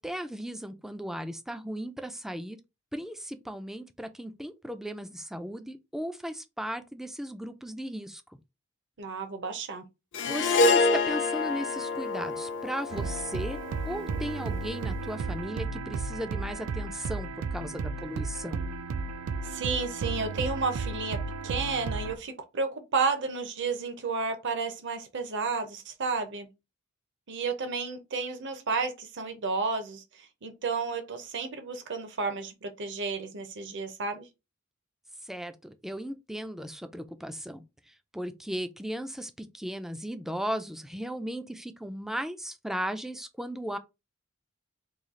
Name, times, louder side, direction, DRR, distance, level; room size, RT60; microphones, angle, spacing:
voice 1, 0.0-2.6 2.9-8.2 10.2-18.6 35.2-43.8, equal, ahead, 0.3 m, -36 dB
voice 2, 9.0-9.8 19.4-26.5 27.3-34.2, right 4 dB, 60° right, 0.8 m, -32 dB
Harp, 10.1-14.6, left 3 dB, 60° left, 0.5 m, -27 dB
sound 1, 12.9-22.2, right 4 dB, 80° right, 0.4 m, -34 dB
3.1 x 2.3 x 3.7 m
head